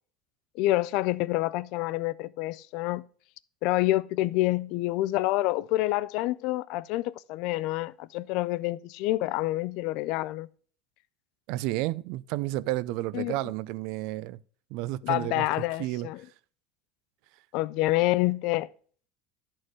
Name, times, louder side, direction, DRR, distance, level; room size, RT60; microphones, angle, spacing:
voice 1, 0.6-3.0 3.6-10.5 13.1-13.3 15.0-16.2 17.5-18.7, left 17 dB, 60° left, 0.3 m, -27 dB
voice 2, 11.5-14.4 14.7-16.1, right 17 dB, 60° right, 0.3 m, -31 dB
11.0 x 4.4 x 4.6 m
cardioid pair, 160°, 0 cm